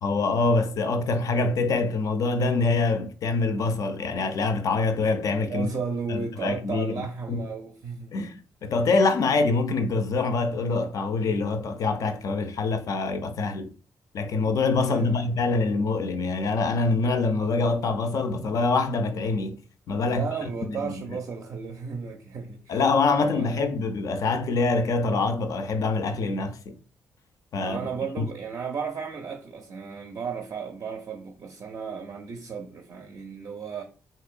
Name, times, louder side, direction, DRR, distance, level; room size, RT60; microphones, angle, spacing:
voice 1, 0.0-5.7 6.1-7.4 8.1-13.7 14.1-19.6 19.9-20.2 20.7-20.9 22.7-26.7 27.5-27.9 28.2-28.3, left 3 dB, 50° left, 0.4 m, -25 dB
voice 2, 5.5-8.2 14.9-15.3 20.1-22.8 23.1-23.7 27.6-33.8, right 5 dB, 45° right, 0.5 m, -34 dB
3.1 x 2.8 x 2.4 m
figure-of-eight pair, 40°, 8 cm